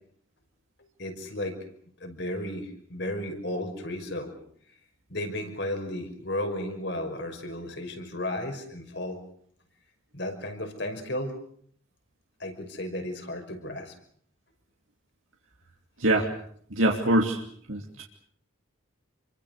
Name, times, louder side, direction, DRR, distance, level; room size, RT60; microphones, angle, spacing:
voice 1, 1.0-1.6 2.0-4.3 5.1-9.2 10.1-11.3 12.4-13.9, left 1 dB, 55° left, 5 dB, 5.7 m, -34 dB
voice 2, 16.8-17.4 17.7-18.0, right 1 dB, 85° right, 1 dB, 2.9 m, -23 dB
28.5 x 24.0 x 6.7 m, 0.63 s
head